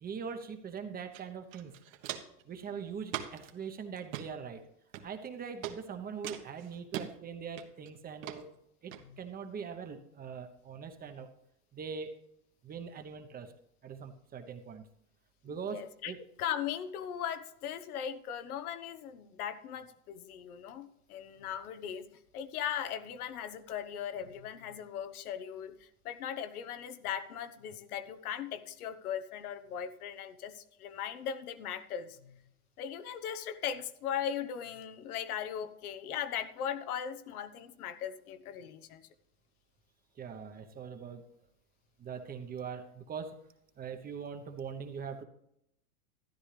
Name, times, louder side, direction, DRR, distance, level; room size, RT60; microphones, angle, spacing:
voice 1, 0.0-1.7 2.5-4.6 5.0-8.5 8.8-11.3 11.7-12.1 12.6-13.5 13.8-14.8 15.4-16.2 40.2-41.2 42.0-43.4 43.8-45.2, right 6 dB, 20° right, 7 dB, 0.9 m, -42 dB
Walk footsteps, 1.1-1.2 1.5-2.4 3.1-3.5 4.0-4.3 4.9-5.3 5.6-5.8 6.2-7.1 7.6-7.9 8.2-8.4 8.9-9.0, right 11 dB, 60° right, 1.4 m, -40 dB
voice 2, 15.7-16.1 16.4-22.1 22.3-32.4 32.8-39.1, left 9 dB, 70° left, 11 dB, 1.1 m, -38 dB
13.0 x 10.0 x 3.3 m, 0.77 s
supercardioid pair, 130°, 45 cm